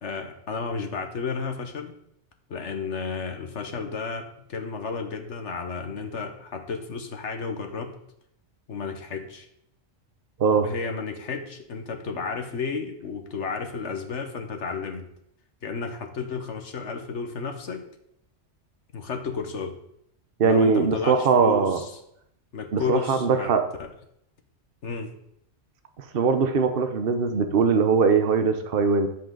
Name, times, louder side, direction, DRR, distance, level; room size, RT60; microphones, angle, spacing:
voice 1, 0.0-1.9 2.5-7.9 8.7-9.5 10.6-15.0 15.6-17.8 18.9-19.8 20.4-22.0 22.5-23.5 23.8-23.9 24.8-25.1, left 5 dB, 75° left, 5 dB, 1.5 m, -32 dB
voice 2, 20.4-21.8 22.7-23.6 26.1-29.1, right 5 dB, 55° right, 7 dB, 1.0 m, -21 dB
13.0 x 7.8 x 3.9 m, 0.75 s
omnidirectional pair, 1.2 m